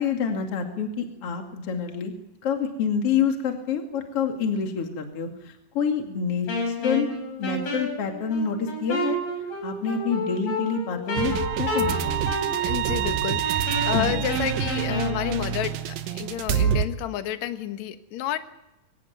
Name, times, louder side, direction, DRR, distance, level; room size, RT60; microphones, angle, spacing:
voice 1, 0.0-2.1 2.4-7.1 7.4-9.2 9.6-12.7 13.9-14.1, left 6 dB, 45° left, 3 dB, 3.0 m, -27 dB
Wind instrument woodwind instrument, 6.5-15.5, left 1 dB, 85° left, 7.2 m, -30 dB
sound 1, 11.2-16.9, right 9 dB, 80° right, 2.8 m, -26 dB
voice 2, 12.5-18.4, left 11 dB, 60° left, 8 dB, 2.4 m, -30 dB
25.5 x 15.5 x 9.3 m, 0.92 s
omnidirectional pair, 4.2 m